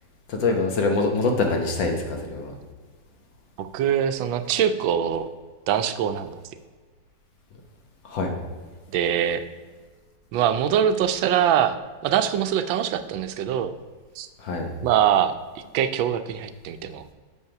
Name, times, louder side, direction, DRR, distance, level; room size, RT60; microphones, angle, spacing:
voice 1, 0.3-2.5 8.0-8.3 14.4-14.7, left 3 dB, 75° left, 3 dB, 1.8 m, -24 dB
voice 2, 3.6-5.3 5.7-6.4 8.9-9.4 10.3-11.8 12.0-13.7 14.1-14.3 14.8-17.1, right 9 dB, 90° right, 10 dB, 1.4 m, -23 dB
7.2 x 5.5 x 5.8 m, 1.5 s
omnidirectional pair, 2.0 m